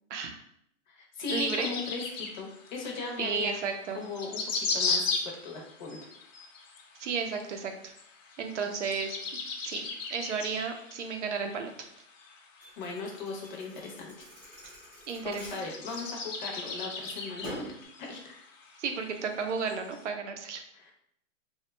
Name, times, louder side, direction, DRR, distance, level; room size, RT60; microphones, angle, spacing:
voice 1, 0.1-0.4 1.3-1.7 3.2-4.0 7.0-7.9 8.4-9.2 9.6-11.7 15.1-15.6 18.8-20.6, right 5 dB, 60° right, 5 dB, 0.6 m, -33 dB
voice 2, 0.9-3.6 3.9-6.0 12.8-14.1 15.2-17.7 18.0-18.5 20.7-20.9, left 4 dB, 35° left, 0 dB, 0.7 m, -38 dB
sound 1, 1.3-20.0, left 4 dB, 70° left, 0.8 m, -37 dB
Thump thud, 12.6-16.6 17.0-17.8, equal, 10° right, 0.7 m, -47 dB
3.0 x 2.3 x 3.2 m, 0.72 s
hypercardioid pair, 165°, 39 cm